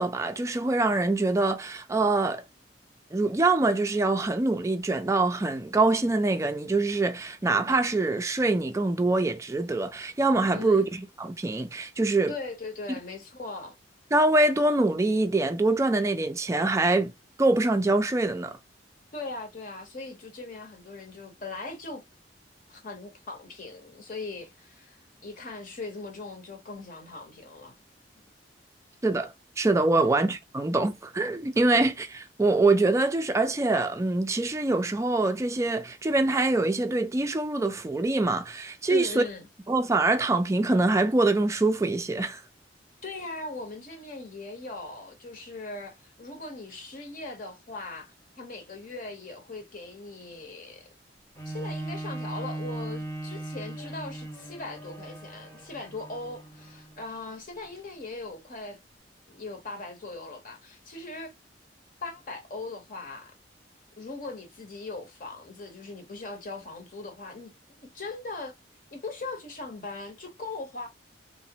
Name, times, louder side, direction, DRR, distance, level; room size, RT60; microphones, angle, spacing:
voice 1, 0.0-2.4 3.1-12.3 14.1-17.1 17.4-18.6 29.0-39.2 39.7-42.4, right 2 dB, 15° right, 0.3 m, -24 dB
voice 2, 10.5-10.8 12.3-13.7 19.1-22.0 22.7-27.7 29.9-30.2 31.7-31.9 38.9-39.5 43.0-50.9 51.4-58.8 59.3-61.3 62.0-63.3 64.0-68.5 68.9-70.9, left 3 dB, 50° left, 0.9 m, -39 dB
Bowed string instrument, 51.4-57.0 57.6-57.7, right 2 dB, 15° left, 0.8 m, -38 dB
2.9 x 2.1 x 2.8 m
head